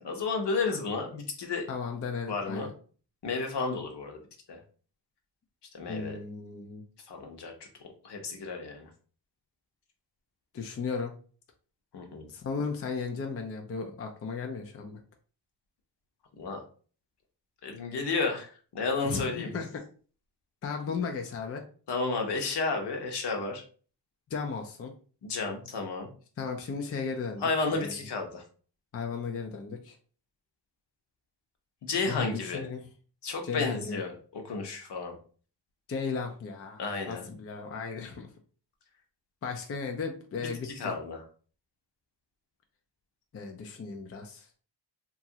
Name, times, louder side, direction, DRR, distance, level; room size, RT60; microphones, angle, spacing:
voice 1, 0.0-1.7 2.3-2.7 3.2-4.2 4.5-4.6 5.7-6.2 7.1-7.5 8.0-8.9 11.9-12.3 16.4-16.6 17.6-19.5 21.9-23.6 25.2-26.1 27.4-28.4 31.8-32.6 33.2-35.2 36.8-37.2 40.6-41.2, left 4 dB, 60° left, 3 dB, 0.9 m, -32 dB
voice 2, 1.7-2.7 5.9-6.8 10.5-11.1 12.3-15.0 19.0-19.8 20.6-21.6 24.3-24.9 26.4-27.9 28.9-30.0 32.1-32.8 33.4-34.0 35.9-36.8 37.1-38.3 39.4-40.9 43.3-44.6, left 5 dB, 35° left, 3 dB, 0.5 m, -35 dB
2.9 x 2.4 x 2.8 m, 0.41 s
cardioid pair, 90°, 45 cm